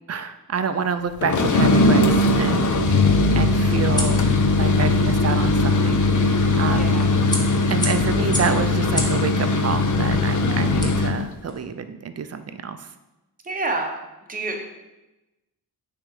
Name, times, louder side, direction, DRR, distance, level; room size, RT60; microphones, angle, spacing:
voice 1, 0.1-4.3 4.6-7.0 7.7-12.9, right 6 dB, 45° right, 10 dB, 0.4 m, -28 dB
sound 1, 1.2-11.2, left 2 dB, 55° left, 0.6 m, -19 dB
sound 2, 1.7-11.6, left 1 dB, 10° left, 0.8 m, -35 dB
voice 2, 6.7-7.1 10.3-10.6 13.4-13.9 14.3-14.6, right 3 dB, 25° right, 2 dB, 0.8 m, -28 dB
9.9 x 3.4 x 3.2 m, 1.0 s
wide cardioid pair, 135°, 37 cm